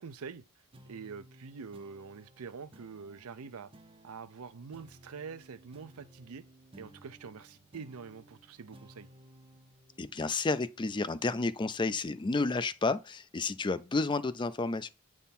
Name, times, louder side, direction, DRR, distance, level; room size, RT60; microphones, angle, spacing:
voice 1, 0.0-3.7 4.0-6.4 6.8-9.1, right 5 dB, 75° right, 0.6 m, -45 dB
sound 1, 0.7-11.6, right 1 dB, 25° right, 0.6 m, -58 dB
voice 2, 10.0-14.9, left 3 dB, 20° left, 0.4 m, -31 dB
8.1 x 3.7 x 4.2 m
head